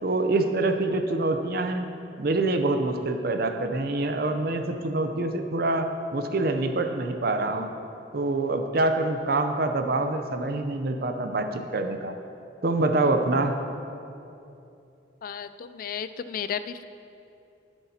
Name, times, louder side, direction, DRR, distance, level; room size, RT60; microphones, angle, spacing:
voice 1, 0.0-1.9 2.2-7.7 8.1-12.1 12.6-13.6, right 2 dB, 55° right, 7 dB, 0.6 m, -26 dB
voice 2, 15.2-16.8, left 7 dB, 50° left, 12 dB, 0.3 m, -33 dB
14.0 x 7.9 x 2.9 m, 2.7 s
head